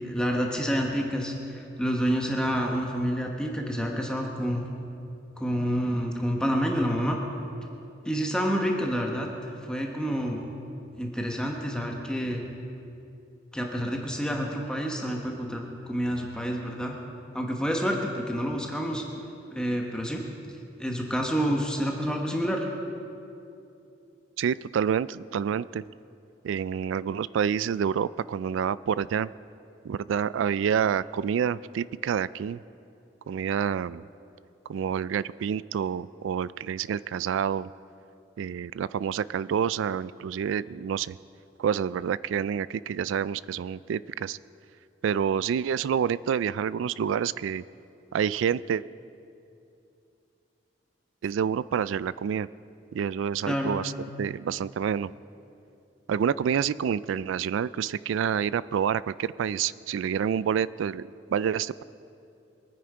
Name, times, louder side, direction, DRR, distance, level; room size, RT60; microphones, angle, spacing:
voice 1, 0.0-4.7 5.4-7.2 8.0-10.4 11.0-12.4 13.5-16.9 17.3-20.2 20.8-22.7 53.5-53.7, equal, 5° left, 0 dB, 1.1 m, -28 dB
voice 2, 24.4-25.8 26.4-29.3 29.8-32.6 33.3-34.0 34.7-37.7 38.4-41.1 41.6-44.4 45.0-47.6 48.1-48.8 51.2-52.5 52.9-53.9 54.2-55.1 56.1-61.8, right 8 dB, 85° right, 18 dB, 0.3 m, -28 dB
23.5 x 9.5 x 4.8 m, 2.7 s
head